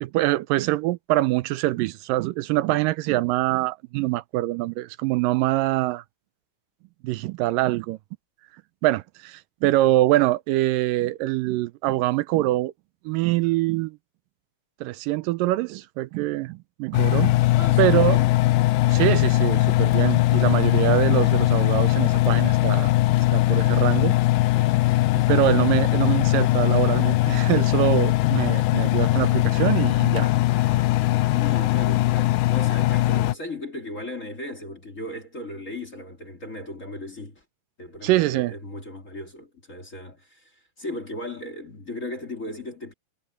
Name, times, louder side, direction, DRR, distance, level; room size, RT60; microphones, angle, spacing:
voice 1, 0.0-6.0 7.0-8.0 8.8-12.7 13.1-14.0 14.8-17.4 17.8-18.2 18.9-22.9 23.3-24.1 25.1-30.3 30.7-30.8 38.0-38.5, right 16 dB, 80° right, 2.3 m, -24 dB
Engine, 16.9-33.3, left 17 dB, 80° left, 2.4 m, -20 dB
voice 2, 17.6-18.3 25.3-25.7 31.3-37.4 37.8-42.9, left 2 dB, 25° left, 2.4 m, -36 dB
omnidirectional pair, 3.9 m